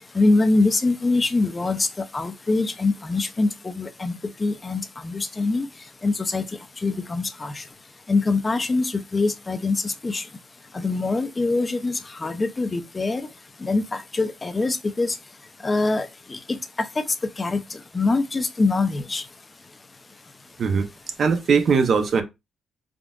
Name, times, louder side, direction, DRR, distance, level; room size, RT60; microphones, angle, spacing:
voice 1, 0.1-5.7 6.0-6.4 6.8-7.6 8.1-10.2 10.7-13.2 13.6-15.2 15.6-16.6 17.4-17.6 17.9-19.2, left 3 dB, 25° left, 0.5 m, -24 dB
voice 2, 21.2-22.2, right 5 dB, 55° right, 0.6 m, -20 dB
3.6 x 2.5 x 2.3 m
cardioid pair, 90°, 0 cm